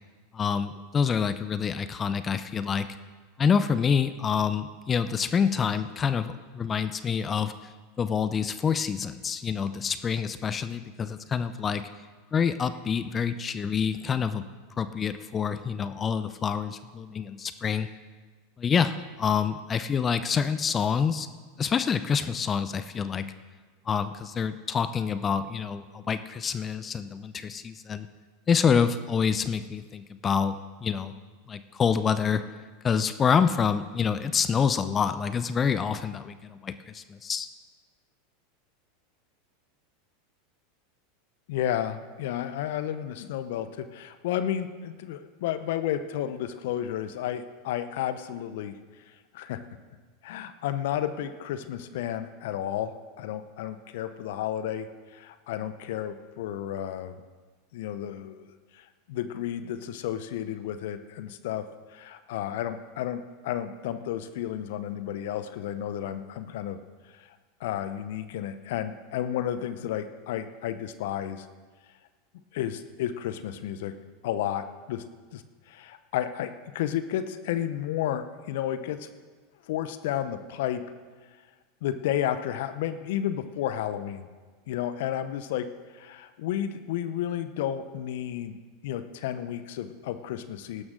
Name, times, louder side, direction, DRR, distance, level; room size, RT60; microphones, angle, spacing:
voice 1, 0.3-2.9 3.4-7.5 8.0-11.9 12.3-14.4 14.8-17.9 18.6-21.3 21.6-23.3 23.9-28.1 28.5-30.6 30.8-31.1 31.5-32.4 32.8-37.5, left 6 dB, 25° left, 12 dB, 0.6 m, -27 dB
voice 2, 41.5-48.8 49.1-49.6 50.2-57.2 57.7-58.5 58.7-61.6 61.9-66.8 67.1-71.5 72.5-73.9 74.2-75.0 75.3-79.1 79.7-80.8 81.8-84.3 84.7-85.7 85.9-88.6 88.8-90.8, left 11 dB, 65° left, 11 dB, 0.7 m, -32 dB
16.0 x 12.5 x 3.8 m, 1.4 s
hypercardioid pair, 90°, 0 cm